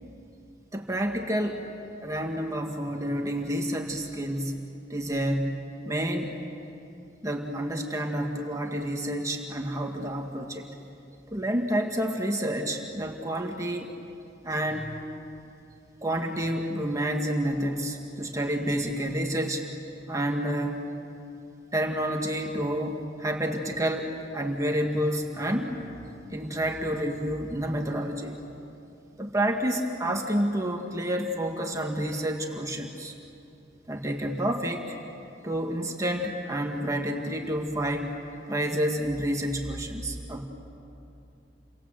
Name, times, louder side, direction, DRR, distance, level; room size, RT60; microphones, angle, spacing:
voice 1, 0.7-1.6 2.0-4.6 4.9-6.3 7.2-10.7 11.3-13.9 14.4-15.0 16.0-19.6 20.1-20.8 21.7-25.8 26.3-28.4 29.2-33.1 33.9-34.9 35.4-38.1 38.5-40.4, right 1 dB, 20° right, 1 dB, 1.8 m, -29 dB
29.5 x 24.5 x 7.7 m, 2.7 s
head